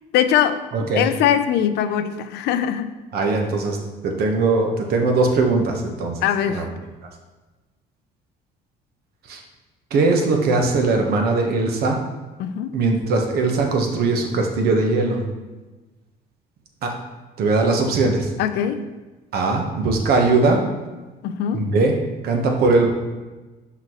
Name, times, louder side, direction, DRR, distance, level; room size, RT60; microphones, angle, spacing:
voice 1, 0.1-0.6 0.9-2.9 6.2-6.7 12.4-12.8 18.4-18.9 21.2-21.7, left 9 dB, 80° left, 10 dB, 0.5 m, -21 dB
voice 2, 0.7-1.1 3.1-3.8 4.0-6.2 6.5-6.6 9.3-9.4 9.9-12.0 12.7-15.2 16.8-16.9 17.4-18.3 19.3-20.6 21.5-22.0 22.2-22.9, right 3 dB, 65° right, 2 dB, 1.1 m, -20 dB
5.9 x 5.8 x 3.0 m, 1.2 s
cardioid pair, 110°, 17 cm